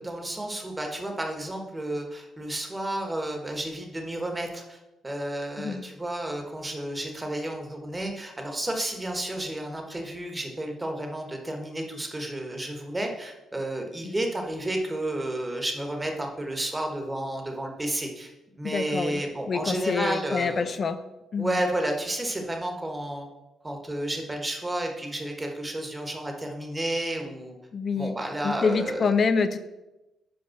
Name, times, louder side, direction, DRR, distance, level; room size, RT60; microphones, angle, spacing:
voice 1, 0.0-18.3 18.6-20.8 21.4-23.3 23.6-27.6 27.9-29.1, right 1 dB, 15° right, 3 dB, 1.3 m, -31 dB
voice 2, 18.6-19.2 19.5-21.0 21.3-21.6 27.7-28.2 28.4-29.6, left 5 dB, 45° left, 10 dB, 0.5 m, -26 dB
5.4 x 5.2 x 5.8 m, 1.0 s
cardioid pair, 95°, 0 cm